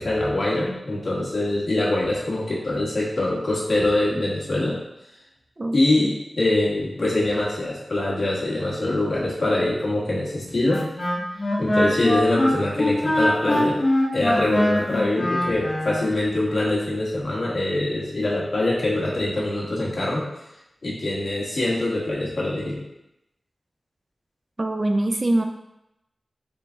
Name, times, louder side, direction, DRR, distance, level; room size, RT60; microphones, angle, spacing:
voice 1, 0.0-4.8 5.7-10.8 11.6-13.8 14.1-20.2 20.8-22.8, left 2 dB, 55° left, -6 dB, 1.5 m, -24 dB
voice 2, 5.6-6.1 24.6-25.4, right 1 dB, 35° right, 5 dB, 0.3 m, -24 dB
Wind instrument woodwind instrument, 10.7-16.0, left 1 dB, 20° left, 1.6 m, -22 dB
3.8 x 3.5 x 3.8 m, 0.87 s
wide cardioid pair, 105°, 0 cm